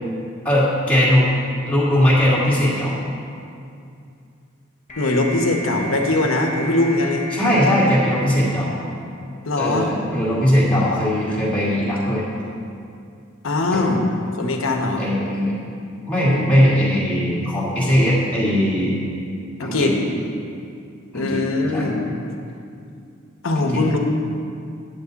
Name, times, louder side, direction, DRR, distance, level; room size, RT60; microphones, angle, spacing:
voice 1, 0.4-1.2 1.7-3.0 7.3-8.7 9.6-12.2 13.7-14.0 15.0-15.6 16.1-19.0 19.6-19.9 21.1-21.4 21.7-21.9 23.6-23.8, equal, 5° left, -8 dB, 2.0 m, -19 dB
sound 1, 4.9-9.4, right 1 dB, 40° left, 0.9 m, -33 dB
voice 2, 5.0-7.2 9.4-9.9 13.4-14.0 14.4-15.1 19.6-19.9 21.1-22.0 23.4-24.0, left 2 dB, 80° left, 3 dB, 1.0 m, -21 dB
9.5 x 7.9 x 4.0 m, 2.5 s
head